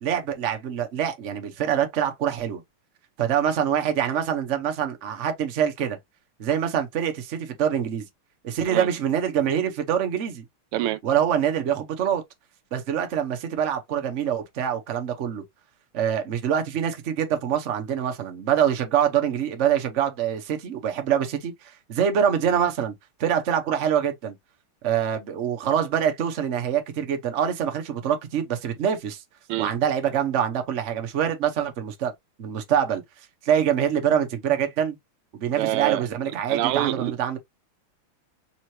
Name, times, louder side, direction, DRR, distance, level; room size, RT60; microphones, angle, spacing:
voice 1, 0.0-2.6 3.2-6.0 6.4-8.0 8.4-10.4 11.0-12.2 12.7-15.4 15.9-22.9 23.2-24.3 24.8-29.2 29.6-32.1 32.4-33.0 33.4-34.9 35.3-37.4, right 9 dB, 50° right, 0.9 m, -25 dB
voice 2, 35.6-36.1 36.5-37.1, right 14 dB, 85° right, 1.5 m, -26 dB
5.6 x 3.0 x 2.7 m
omnidirectional pair, 2.3 m